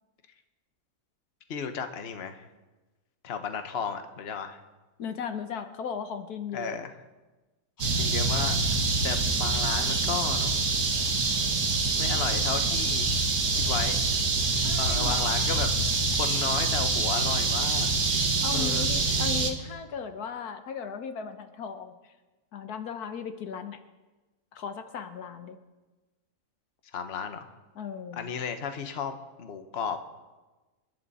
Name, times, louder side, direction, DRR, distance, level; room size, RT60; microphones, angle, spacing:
voice 1, 1.5-2.4 3.2-4.6 6.5-6.9 7.9-8.6 9.0-10.5 12.0-13.1 13.5-14.1 14.8-17.9 18.5-18.9 26.9-27.5 28.1-30.0, left 6 dB, 45° left, 7 dB, 1.2 m, -34 dB
voice 2, 5.0-6.8 14.6-15.4 18.4-22.0 22.5-23.8 24.5-25.6 27.7-28.3, left 6 dB, 75° left, 8 dB, 1.5 m, -36 dB
sound 1, 7.8-19.5, right 3 dB, 75° right, 2.1 m, -26 dB
28.0 x 11.0 x 4.2 m, 1.2 s
omnidirectional pair, 1.7 m